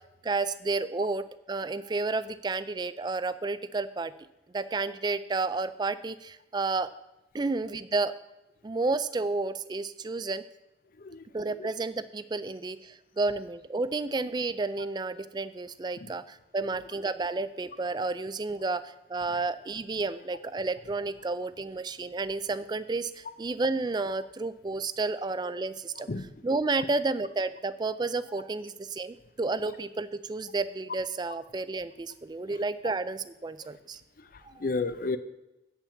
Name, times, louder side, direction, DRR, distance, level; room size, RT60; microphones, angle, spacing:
voice 1, 0.2-4.1 4.5-6.9 7.3-8.1 8.6-10.4 11.3-26.1 26.4-34.0 34.5-34.6, right 3 dB, 25° right, 14 dB, 0.4 m, -31 dB
voice 2, 34.2-35.2, left 3 dB, 50° left, 12 dB, 0.6 m, -33 dB
8.7 x 5.8 x 7.1 m, 0.96 s
head